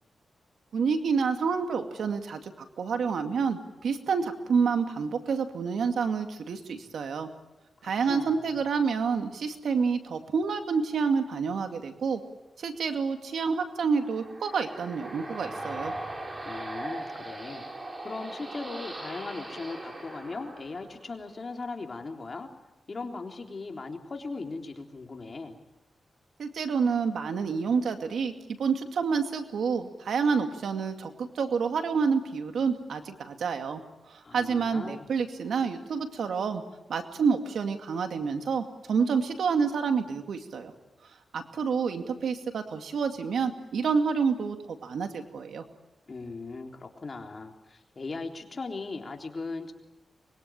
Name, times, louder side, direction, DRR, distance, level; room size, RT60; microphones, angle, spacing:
voice 1, 0.7-2.5 2.8-7.3 7.8-12.2 12.6-15.9 26.4-28.3 28.6-33.8 34.1-36.6 36.9-40.7 41.3-45.6, right 5 dB, 85° right, 6 dB, 2.3 m, -28 dB
voice 2, 7.8-8.6 16.4-17.7 18.0-22.5 22.9-25.6 34.2-35.1 46.1-49.7, left 3 dB, 45° left, 3 dB, 3.7 m, -38 dB
sound 1, 13.7-21.2, right 2 dB, 35° right, 5.4 m, -39 dB
24.5 x 22.0 x 8.9 m, 0.97 s
cardioid pair, 80°, 0 cm